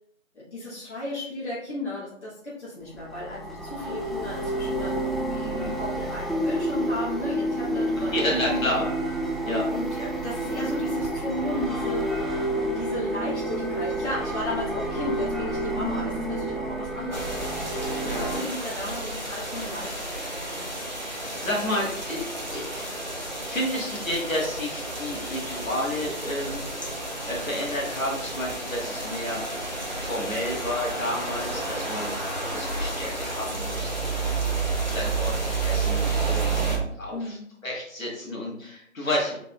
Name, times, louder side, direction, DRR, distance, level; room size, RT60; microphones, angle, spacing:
voice 1, 0.3-8.8 9.4-9.9 10.2-12.1 12.7-17.7 18.0-20.8 37.1-37.5, left 1 dB, 55° left, -7 dB, 1.6 m, -35 dB
sound 1, 3.0-18.4, right 1 dB, ahead, 0.4 m, -29 dB
voice 2, 5.4-5.7 8.1-8.8 9.5-9.6 10.0-10.1 18.1-18.2 21.0-22.2 22.5-22.9 23.4-26.9 27.3-29.4 29.9-37.4 37.6-39.4, left 1 dB, 75° left, -3 dB, 1.8 m, -31 dB
sound 2, 17.1-36.8, right 3 dB, 35° right, 0.7 m, -31 dB
5.0 x 4.0 x 2.4 m, 0.70 s
figure-of-eight pair, 180°, 41 cm